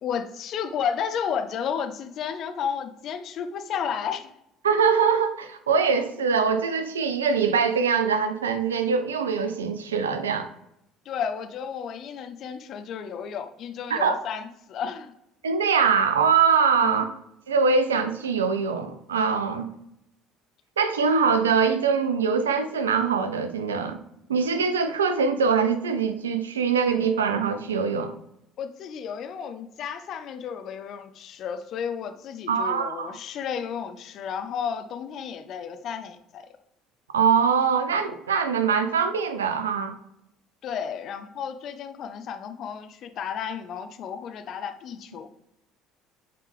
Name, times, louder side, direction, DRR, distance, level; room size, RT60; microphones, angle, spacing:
voice 1, 0.0-4.3 11.1-15.1 16.8-17.0 28.6-36.5 40.6-45.3, left 7 dB, 50° left, 0.5 m, -32 dB
voice 2, 4.6-10.5 13.9-14.2 15.4-17.1 17.5-19.7 20.8-24.0 24.3-28.1 32.5-33.2 37.1-39.9, right 6 dB, 80° right, 0.5 m, -23 dB
8.5 x 3.3 x 3.4 m
figure-of-eight pair, 55°, 0 cm